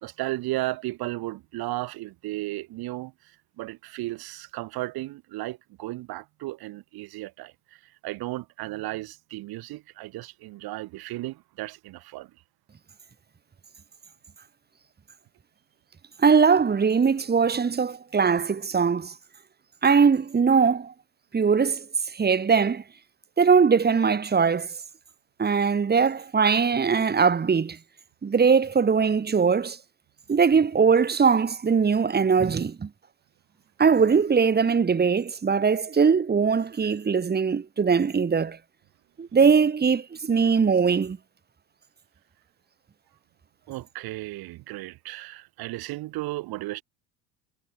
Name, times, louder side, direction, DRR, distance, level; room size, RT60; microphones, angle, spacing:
voice 1, 0.0-3.1 3.6-7.5 8.0-12.3 43.7-46.8, right 18 dB, 45° right, 2.3 m, -34 dB
voice 2, 16.2-19.1 19.8-20.9 21.3-21.9 22.1-22.8 23.4-24.7 25.4-27.8 28.2-29.8 30.3-32.9 33.8-38.6 39.2-41.2, right 6 dB, 20° right, 1.9 m, -21 dB
figure-of-eight pair, 65°, 50 cm